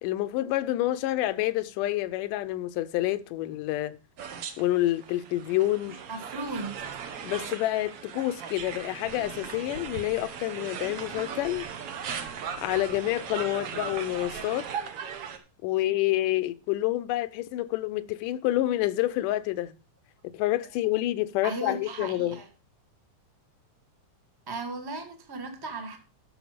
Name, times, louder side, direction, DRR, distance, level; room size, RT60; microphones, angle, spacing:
voice 1, 0.0-4.0 4.6-6.0 7.2-11.7 12.6-14.7 15.6-19.8 20.3-22.4, left 15 dB, 85° left, 2.2 m, -28 dB
sound 1, 4.2-15.4, right 7 dB, 65° right, 1.6 m, -38 dB
voice 2, 6.1-6.7 21.4-22.5 24.5-26.0, right 3 dB, 25° right, 0.5 m, -36 dB
11.5 x 6.5 x 5.0 m
omnidirectional pair, 3.7 m